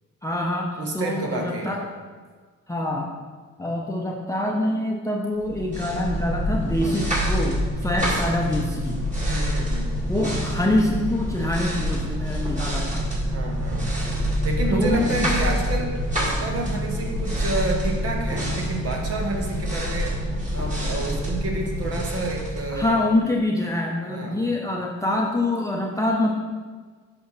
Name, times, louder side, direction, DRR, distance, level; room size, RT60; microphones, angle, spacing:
voice 1, 0.2-1.8 2.7-3.1 3.6-9.0 10.1-13.1 14.7-15.3 22.7-26.3, left 1 dB, 10° left, -2 dB, 0.8 m, -25 dB
voice 2, 0.8-1.7 9.3-10.1 13.3-14.2 14.4-20.1 20.5-23.0 24.1-24.6, right 2 dB, 50° right, 0 dB, 1.3 m, -29 dB
sound 1, 5.4-23.3, equal, 25° right, 2.1 m, -26 dB
7.6 x 5.4 x 4.1 m, 1.5 s
cardioid pair, 90°, 30 cm